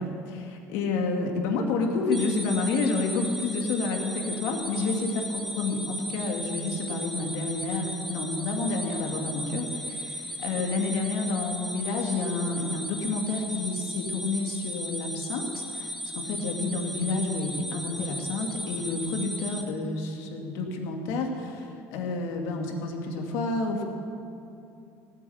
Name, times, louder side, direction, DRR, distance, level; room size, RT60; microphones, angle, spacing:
voice 1, 0.0-23.8, left 3 dB, 75° left, 2 dB, 2.4 m, -29 dB
sound 1, 2.1-19.6, equal, ahead, 1.5 m, -36 dB
17.0 x 8.6 x 8.7 m, 2.7 s
cardioid pair, 140°, 5 cm